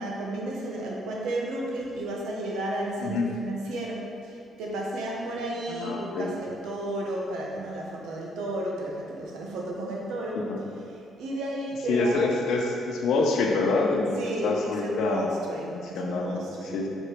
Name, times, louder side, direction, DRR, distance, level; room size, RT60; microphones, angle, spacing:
voice 1, 0.0-10.4 11.2-12.3 14.2-16.8, right 1 dB, 85° right, -2 dB, 1.0 m, -33 dB
voice 2, 3.0-3.3 5.7-6.3 10.3-10.6 11.9-15.4 15.6-16.4 16.7-16.9, left 3 dB, 80° left, 1 dB, 0.7 m, -26 dB
5.0 x 4.4 x 4.4 m, 2.4 s
cardioid pair, 90°, 0 cm